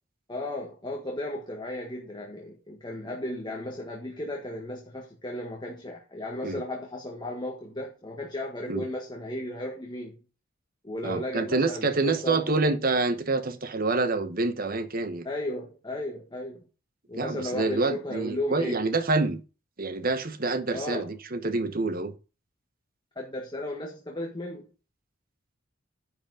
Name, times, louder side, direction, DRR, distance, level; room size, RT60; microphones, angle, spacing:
voice 1, 0.3-10.2 10.8-12.6 15.2-16.6 17.1-18.8 20.7-21.1 23.1-24.7, left 1 dB, 20° left, 1.7 m, -35 dB
voice 2, 11.0-15.3 17.1-19.4 19.8-22.1, right 3 dB, 45° right, 1.1 m, -27 dB
10.0 x 5.1 x 4.9 m
head